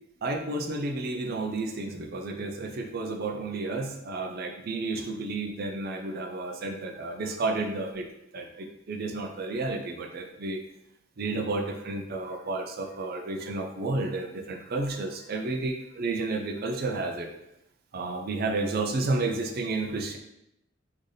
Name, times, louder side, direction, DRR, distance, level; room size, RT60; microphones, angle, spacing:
voice 1, 0.2-8.1 8.3-10.6 11.2-17.3 17.9-20.2, right 3 dB, 50° right, 4 dB, 0.4 m, -31 dB
3.3 x 2.7 x 3.8 m, 0.83 s
head